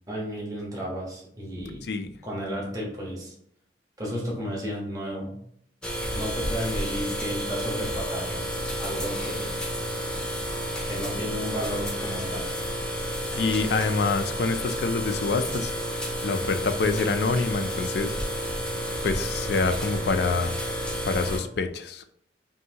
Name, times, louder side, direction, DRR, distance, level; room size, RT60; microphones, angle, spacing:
voice 1, 0.1-1.8 2.2-3.3 4.0-5.4 6.1-8.4 8.8-9.8 10.9-12.5, equal, 20° right, -4 dB, 1.2 m, -33 dB
voice 2, 1.6-2.1 13.4-15.7 16.2-18.5 19.0-20.6 21.1-22.1, left 4 dB, 60° left, 9 dB, 0.4 m, -26 dB
sound 1, 5.8-21.4, equal, 5° left, 0.8 m, -31 dB
5.5 x 2.7 x 2.8 m, 0.69 s
head